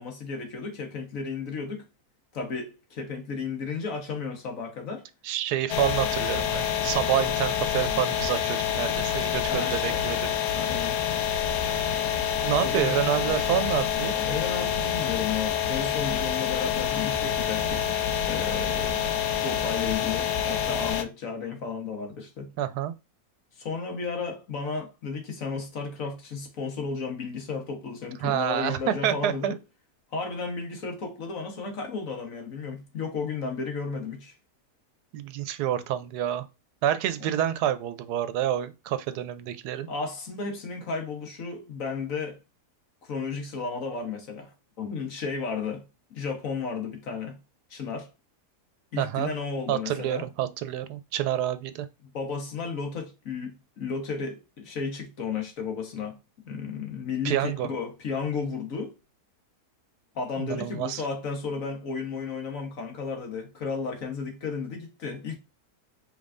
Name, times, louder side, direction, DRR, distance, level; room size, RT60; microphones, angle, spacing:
voice 1, 0.0-1.8 2.3-5.0 9.5-10.0 10.6-11.0 12.6-13.1 14.0-17.9 18.3-19.0 19.4-22.5 23.6-29.6 30.1-34.3 37.2-37.3 39.9-42.4 43.0-45.8 46.1-47.4 47.7-48.1 48.9-50.3 52.1-56.1 56.4-59.0 60.1-65.4, left 5 dB, 60° left, 1.5 m, -33 dB
voice 2, 5.2-10.3 12.4-14.1 22.6-22.9 28.2-29.5 35.1-36.4 36.8-39.9 49.0-49.3 49.7-51.9 57.2-57.7 60.4-61.0, right 11 dB, 80° right, 1.1 m, -28 dB
sound 1, 5.7-21.0, left 9 dB, 75° left, 1.2 m, -27 dB
5.2 x 3.4 x 2.5 m
omnidirectional pair, 1.7 m